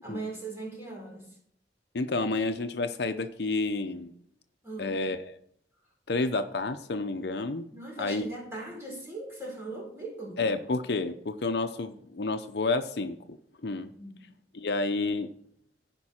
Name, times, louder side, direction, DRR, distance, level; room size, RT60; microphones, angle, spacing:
voice 1, 0.0-1.3 4.6-5.0 7.7-10.5 14.0-14.2, right 2 dB, 15° right, -3 dB, 4.3 m, -39 dB
voice 2, 1.9-4.1 4.8-5.3 6.1-7.7 8.0-8.3 10.4-13.9 14.5-15.3, left 3 dB, 65° left, 8 dB, 0.7 m, -30 dB
15.5 x 5.3 x 4.4 m, 0.66 s
head